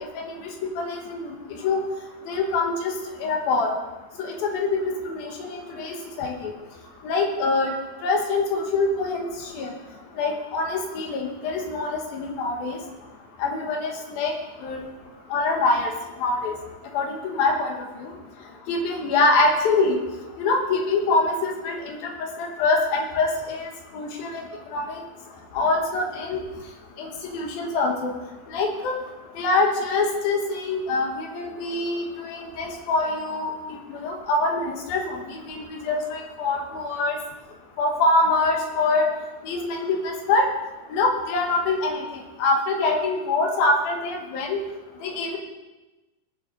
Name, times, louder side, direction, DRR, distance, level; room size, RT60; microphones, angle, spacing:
voice 1, 0.4-1.8 2.3-2.9 3.2-3.7 4.2-6.5 7.0-7.7 8.0-9.7 10.2-12.8 13.4-14.3 14.6-14.8 15.3-15.9 16.2-16.6 16.9-18.1 18.7-20.0 20.4-24.4 24.7-24.9 25.5-26.4 27.0-28.1 28.5-29.0 29.4-33.5 33.9-37.2 37.8-39.0 39.4-40.5 40.9-44.6 45.0-45.4, left 3 dB, 70° left, 1 dB, 3.0 m, -24 dB
19.0 x 6.7 x 3.9 m, 1.1 s
omnidirectional pair, 4.6 m